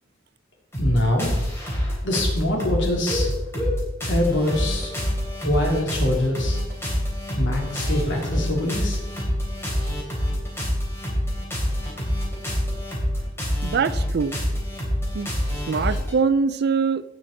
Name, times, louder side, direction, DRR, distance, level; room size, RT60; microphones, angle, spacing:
sound 1, 0.7-16.1, equal, 10° left, 3.4 m, -26 dB
voice 1, 0.8-1.4 2.0-3.3 4.0-4.9 5.4-6.6 7.3-9.0, left 1 dB, 65° left, -1 dB, 3.1 m, -24 dB
voice 2, 13.6-14.4 15.1-15.3 15.7-17.0, right 5 dB, 55° right, 16 dB, 0.4 m, -23 dB
17.0 x 5.8 x 4.4 m, 1.0 s
head